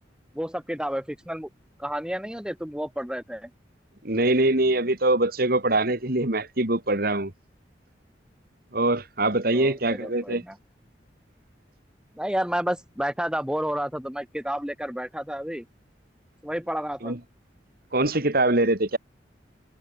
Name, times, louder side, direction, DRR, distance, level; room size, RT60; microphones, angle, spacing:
voice 1, 0.3-1.5 1.8-3.5 9.5-10.6 12.1-15.6 16.4-17.1, equal, 5° right, 3.2 m, -30 dB
voice 2, 4.0-7.3 8.7-10.4 17.0-17.2 17.9-19.0, right 2 dB, 55° right, 2.9 m, -23 dB
head